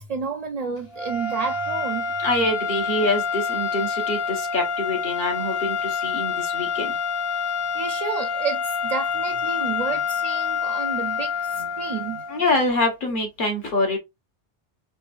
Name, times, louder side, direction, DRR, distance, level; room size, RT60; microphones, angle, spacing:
voice 1, 0.0-2.1 7.7-12.2, right 5 dB, 50° right, 0.5 m, -30 dB
sound 1, 0.9-12.5, left 5 dB, 35° left, 0.9 m, -27 dB
voice 2, 2.2-7.0 12.3-14.0, left 2 dB, 55° left, 1.4 m, -25 dB
5.2 x 2.6 x 2.4 m
omnidirectional pair, 1.0 m